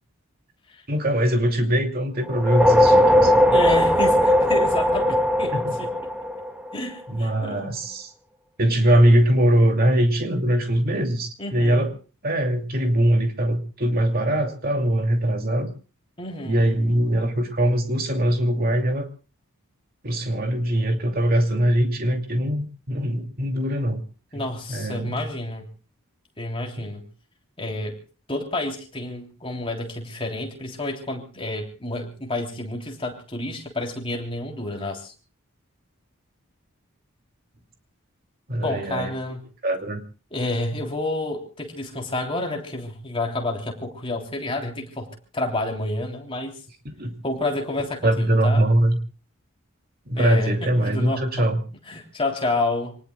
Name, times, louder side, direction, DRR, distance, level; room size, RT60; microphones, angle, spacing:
voice 1, 0.9-3.6 5.5-5.7 7.1-8.1 8.6-11.9 12.2-15.7 16.4-19.1 20.0-24.0 24.7-25.3 26.8-26.9 38.5-39.1 39.6-40.0 47.0-47.2 48.0-49.0 50.1-51.6, right 1 dB, 45° right, 4 dB, 2.6 m, -22 dB
sound 1, 2.3-6.9, equal, 5° right, 1.9 m, -18 dB
voice 2, 3.5-5.9 6.7-7.9 11.4-11.9 16.2-16.7 24.3-25.7 26.4-27.1 27.6-28.0 28.3-35.1 38.6-39.4 40.3-46.6 47.2-48.7 50.1-51.5 51.9-53.0, left 2 dB, 25° left, 1 dB, 3.2 m, -29 dB
27.5 x 19.5 x 2.3 m, 0.36 s
head